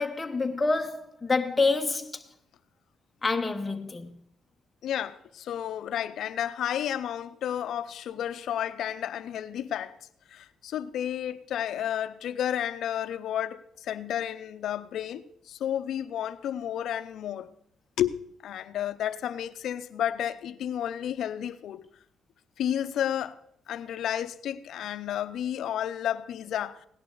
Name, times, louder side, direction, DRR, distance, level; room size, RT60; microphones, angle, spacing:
voice 1, 0.0-2.2 3.2-4.1, left 3 dB, 20° left, 1.3 m, -27 dB
voice 2, 4.8-9.9 10.3-17.5 18.0-21.8 22.6-23.4 23.7-26.8, left 10 dB, 75° left, 0.7 m, -32 dB
17.5 x 11.0 x 4.0 m
cardioid pair, 90°, 0 cm